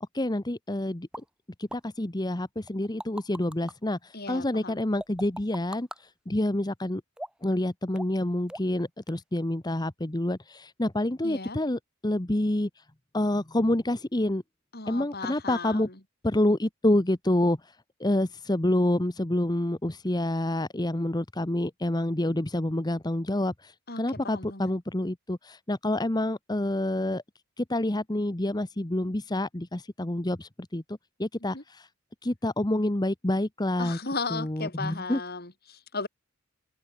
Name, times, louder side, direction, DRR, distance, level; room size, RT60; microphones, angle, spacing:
voice 1, 0.1-1.1 1.6-7.0 7.4-12.8 13.1-14.4 14.9-15.9 16.2-27.2 27.6-31.9 32.2-34.0 34.3-35.2, left 1 dB, 20° left, 1.0 m, -28 dB
sound 1, 1.1-1.2 1.7-1.8 2.7-3.7 5.0-6.0 7.2-7.5 8.0-8.2 8.5-8.8 9.1-9.2, right 1 dB, 5° right, 5.5 m, -39 dB
voice 2, 4.1-4.8 11.2-11.6 14.7-15.9 23.9-24.7 31.4-31.6 33.8-36.1, left 3 dB, 50° left, 4.8 m, -36 dB
head